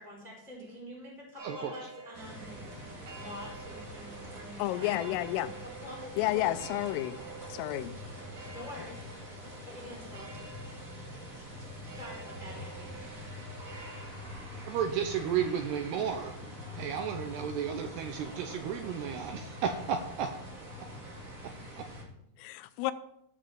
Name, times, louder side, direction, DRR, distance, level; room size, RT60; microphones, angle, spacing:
voice 1, 0.0-2.6 3.2-6.5 8.5-9.3 9.6-10.3 11.8-12.9, left 1 dB, ahead, -2 dB, 4.3 m, -47 dB
sound 1, 1.4-14.1, right 3 dB, 50° right, 2.2 m, -49 dB
voice 2, 1.4-1.8 14.7-16.3 16.7-20.3 21.4-21.9, right 8 dB, 80° right, 7 dB, 2.4 m, -33 dB
sound 2, 2.1-22.0, equal, 30° right, 1.5 m, -45 dB
voice 3, 4.6-5.5 6.2-7.2 7.5-7.9 22.4-22.9, left 15 dB, 85° left, 13 dB, 3.3 m, -31 dB
14.5 x 6.7 x 7.4 m, 0.77 s
omnidirectional pair, 5.8 m